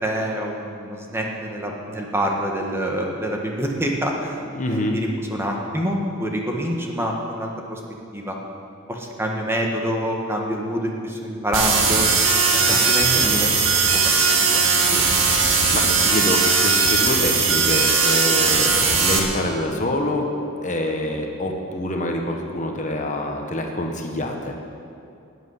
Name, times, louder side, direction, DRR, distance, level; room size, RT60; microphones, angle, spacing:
voice 1, 0.0-4.4 4.7-7.8 8.1-8.4 8.9-12.1 12.5-13.5 13.9-15.0, equal, 10° right, 0 dB, 1.5 m, -26 dB
voice 2, 4.5-5.0 12.7-12.8 13.1-13.5 15.7-20.3 20.6-24.5, left 1 dB, 40° left, 2 dB, 1.3 m, -26 dB
sound 1, 11.5-19.2, right 4 dB, 70° right, 1.9 m, -18 dB
12.5 x 8.2 x 9.7 m, 2.5 s
head